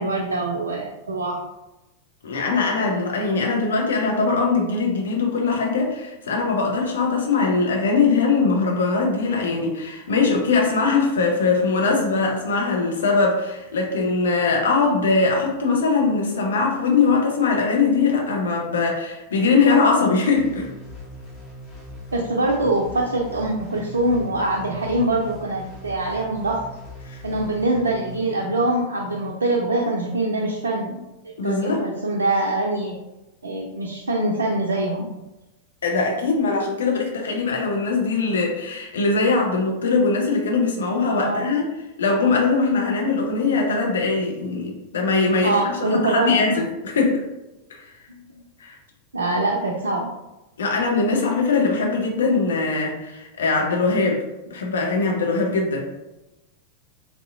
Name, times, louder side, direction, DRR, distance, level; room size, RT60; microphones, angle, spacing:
voice 1, 0.0-1.4 22.1-26.6 27.2-31.0 31.4-33.0 33.4-35.1 41.1-41.5 45.4-46.6 48.1-48.2 49.1-50.1, right 2 dB, 75° right, -2 dB, 0.4 m, -24 dB
voice 2, 2.2-20.7 27.1-27.2 31.4-31.8 35.8-41.7 42.0-45.6 45.9-47.2 47.7-47.8 48.6-48.7 50.6-54.2 54.5-55.9, left 4 dB, 65° left, 0 dB, 0.7 m, -21 dB
sound 1, 20.4-28.2, left 1 dB, 30° left, 1.4 m, -40 dB
3.5 x 2.7 x 2.4 m, 0.98 s
figure-of-eight pair, 90°, 0 cm